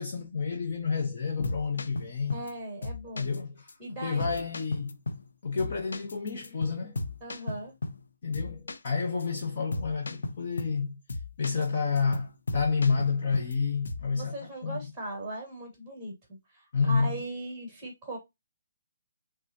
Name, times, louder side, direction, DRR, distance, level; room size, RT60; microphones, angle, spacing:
voice 1, 0.0-2.4 3.1-3.7 4.0-5.0 5.4-7.0 8.2-10.9 11.4-14.9 16.7-17.2, left 5 dB, 35° left, 0.8 m, -29 dB
sound 1, 1.2-2.5 2.8-3.4 3.7-3.8 4.2-5.3 5.6-8.1 8.3-8.9 9.2-9.4 9.7-10.8 11.1-11.7 12.0-13.6 13.8-14.1, left 2 dB, 85° left, 0.8 m, -36 dB
voice 2, 2.3-3.3 3.8-4.3 7.2-7.7 14.1-16.1 16.5-18.2, right 2 dB, 5° right, 2.2 m, -39 dB
5.4 x 3.6 x 2.7 m
hypercardioid pair, 180°, 0 cm